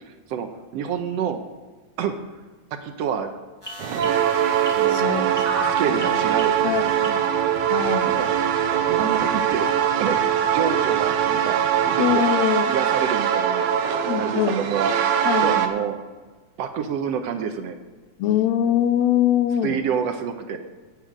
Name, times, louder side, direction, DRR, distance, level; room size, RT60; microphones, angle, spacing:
voice 1, 0.7-1.4 2.0-2.1 2.8-3.3 4.7-6.5 7.0-7.2 8.0-8.3 8.9-9.7 10.0-10.2 10.5-11.6 11.8-12.3 12.7-13.7 14.2-14.9 15.2-16.0 16.6-17.8 19.6-20.6, right 7 dB, 70° right, 7 dB, 1.7 m, -28 dB
sound 1, 3.6-7.6 8.2-8.3, equal, 10° left, 1.5 m, -34 dB
sound 2, 3.8-15.7, right 9 dB, 85° right, 2.4 m, -22 dB
voice 2, 4.9-5.3 5.6-6.3 6.6-6.9 7.7-8.1 12.0-12.7 14.1-14.6 15.3-15.5 18.2-19.8, left 10 dB, 80° left, 10 dB, 1.8 m, -23 dB
10.5 x 6.4 x 8.3 m, 1.4 s
omnidirectional pair, 3.3 m